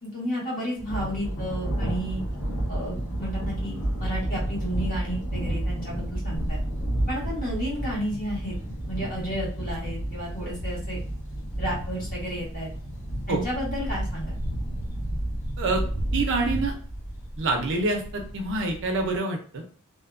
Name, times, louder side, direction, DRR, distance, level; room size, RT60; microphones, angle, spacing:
voice 1, 0.0-2.2 2.7-6.6 7.1-8.5 8.9-11.0 11.6-12.7 13.3-14.3, equal, 40° left, -6 dB, 1.3 m, -32 dB
Thunder, 0.8-19.2, right 1 dB, 85° left, 1.4 m, -31 dB
voice 2, 16.1-16.7 17.4-19.6, right 3 dB, 60° right, 3 dB, 0.5 m, -26 dB
2.6 x 2.2 x 2.4 m, 0.42 s
head